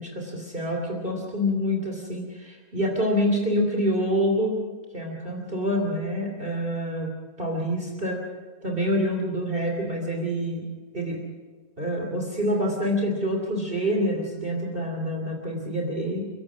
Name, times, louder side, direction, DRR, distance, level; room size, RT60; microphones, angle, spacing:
voice 1, 0.0-4.6 4.9-7.1 7.4-8.2 8.6-10.6 10.9-11.2 11.8-16.2, equal, 35° right, 1 dB, 3.1 m, -26 dB
29.0 x 16.5 x 6.1 m, 1.4 s
omnidirectional pair, 1.5 m